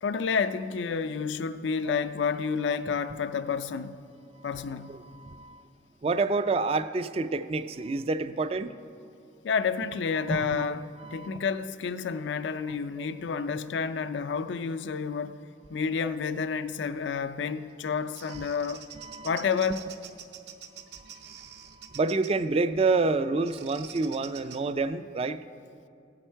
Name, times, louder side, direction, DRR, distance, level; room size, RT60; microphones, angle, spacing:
voice 1, 0.0-4.0 4.4-5.0 9.4-15.4 15.7-18.9 19.2-19.8, left 5 dB, 80° left, 0.4 m, -30 dB
voice 2, 4.9-5.6 6.0-8.7 10.3-10.7 11.0-11.3 13.0-13.1 16.0-16.1 18.3-18.4 19.0-19.3 21.0-21.1 21.8-25.4, right 3 dB, 30° right, 0.3 m, -28 dB
Bird vocalization bird call bird song, 17.7-22.4 23.5-24.6, right 8 dB, 65° right, 0.7 m, -47 dB
16.0 x 8.8 x 4.5 m
head